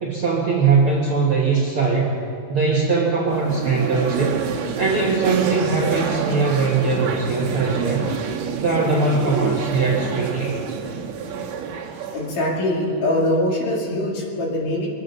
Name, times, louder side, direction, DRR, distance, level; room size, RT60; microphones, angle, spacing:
voice 1, 0.0-2.1 2.5-4.4 4.8-8.1 8.6-10.6, right 4 dB, 50° right, -3 dB, 1.6 m, -21 dB
sound 1, 3.3-13.3, right 6 dB, 75° right, 3.0 m, -28 dB
voice 2, 12.1-14.9, left 1 dB, 60° left, -2 dB, 3.6 m, -22 dB
23.5 x 8.6 x 6.8 m, 2.4 s
omnidirectional pair, 4.6 m